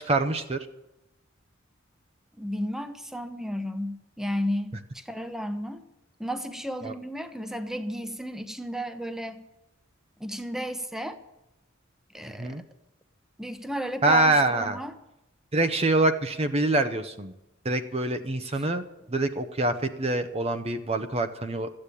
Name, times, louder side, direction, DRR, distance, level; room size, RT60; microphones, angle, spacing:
voice 1, 0.1-0.7 6.8-6.9 12.4-12.6 14.0-14.8 15.5-17.3 17.6-21.7, right 2 dB, 30° right, 8 dB, 0.8 m, -25 dB
voice 2, 2.4-5.8 6.2-9.4 10.2-11.2 12.1-12.6 13.4-14.9, equal, ahead, 9 dB, 0.9 m, -33 dB
14.0 x 8.7 x 9.9 m, 0.91 s
head